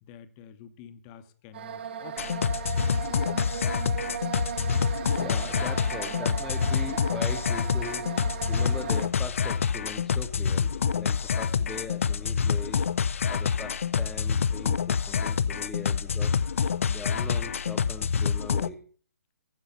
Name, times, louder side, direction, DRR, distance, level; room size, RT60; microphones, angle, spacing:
voice 1, 0.0-2.6, left 9 dB, 25° left, 0.9 m, -49 dB
sound 1, 1.5-9.1, right 9 dB, 45° right, 0.8 m, -37 dB
sound 2, 2.2-18.7, left 6 dB, 60° left, 0.5 m, -27 dB
voice 2, 5.2-13.0 13.3-16.4 16.9-18.9, left 3 dB, 5° left, 0.4 m, -41 dB
15.0 x 5.6 x 5.6 m
figure-of-eight pair, 145°, 8 cm